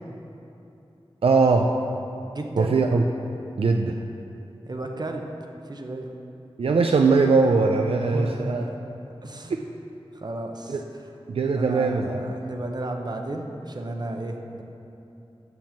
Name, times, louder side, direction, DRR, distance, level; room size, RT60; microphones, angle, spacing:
voice 1, 1.2-1.7 2.6-3.0 3.6-4.0 6.6-8.6 10.7-10.8 11.3-12.2, right 4 dB, 70° right, 3 dB, 0.4 m, -20 dB
voice 2, 2.2-2.8 4.7-5.2 5.6-6.1 7.9-8.8 9.2-9.7 10.1-11.2 11.5-14.6, right 2 dB, 45° right, 3 dB, 0.8 m, -33 dB
7.7 x 5.3 x 7.2 m, 2.8 s
wide cardioid pair, 80°, 10 cm